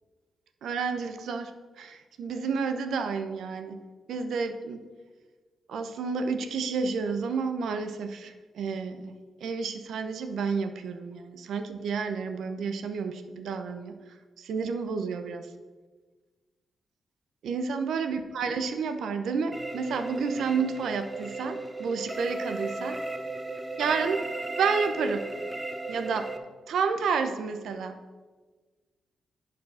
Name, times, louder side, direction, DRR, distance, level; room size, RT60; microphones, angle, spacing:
voice 1, 0.6-1.5 1.8-3.8 4.1-4.8 5.7-9.1 9.4-14.0 14.4-15.5 17.4-23.0 23.8-24.3 24.6-25.3 25.9-26.3 26.7-27.9, right 5 dB, 80° right, 8 dB, 0.8 m, -30 dB
sound 1, 19.5-26.4, right 2 dB, 10° right, 0.7 m, -35 dB
10.5 x 5.2 x 5.6 m, 1.4 s
wide cardioid pair, 155°, 0 cm